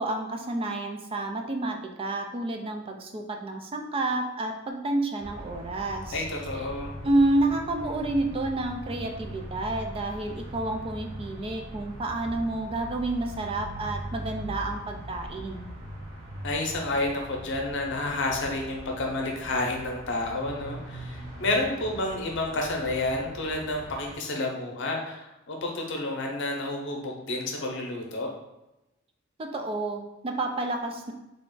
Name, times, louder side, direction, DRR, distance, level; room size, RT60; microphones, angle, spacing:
voice 1, 0.0-6.2 7.0-15.7 29.4-31.1, right 2 dB, 25° right, 3 dB, 0.3 m, -29 dB
sound 1, 5.2-24.2, right 1 dB, 75° right, 1.2 m, -41 dB
voice 2, 6.1-7.0 16.4-28.3, left 2 dB, 60° left, 1 dB, 0.7 m, -30 dB
3.5 x 2.4 x 3.7 m, 0.95 s
head